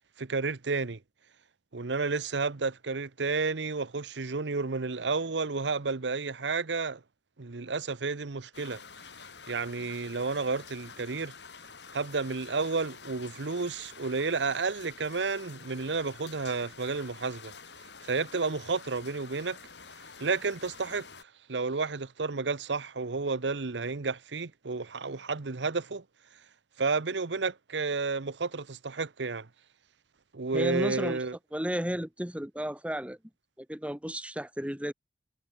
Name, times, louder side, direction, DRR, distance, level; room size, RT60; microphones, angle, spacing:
voice 1, 0.2-1.0 1.7-7.0 7.4-8.8 9.5-11.3 11.9-17.5 18.0-19.6 20.2-21.1 21.5-26.0 26.8-29.5 30.3-31.4, right 4 dB, 90° right, 0.9 m, -31 dB
sound 1, 8.5-21.2, left 5 dB, 75° left, 4.9 m, -49 dB
voice 2, 30.5-31.2 31.5-33.2 33.6-34.9, equal, 5° right, 1.9 m, -33 dB
head